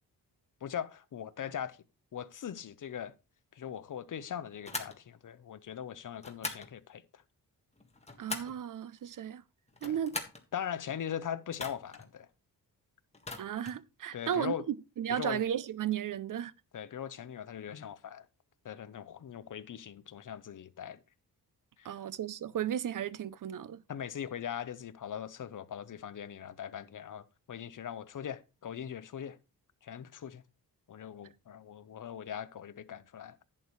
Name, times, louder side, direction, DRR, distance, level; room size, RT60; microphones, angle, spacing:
voice 1, 0.6-1.8 2.1-3.1 3.5-7.2 9.8-10.0 10.5-12.3 14.1-14.6 15.1-15.4 16.7-18.3 18.6-21.0 21.8-21.9 23.9-29.4 29.8-30.4 30.9-33.4, left 9 dB, 55° left, 0.8 m, -40 dB
sound 1, 4.6-5.0 6.2-6.7 7.8-8.6 9.7-10.4 11.5-12.0 13.1-13.8, left 3 dB, 15° left, 1.6 m, -41 dB
voice 2, 8.2-9.4 9.8-10.2 13.3-16.5 21.8-23.8, right 9 dB, 55° right, 0.6 m, -34 dB
11.0 x 8.6 x 3.2 m
cardioid pair, 100°, 38 cm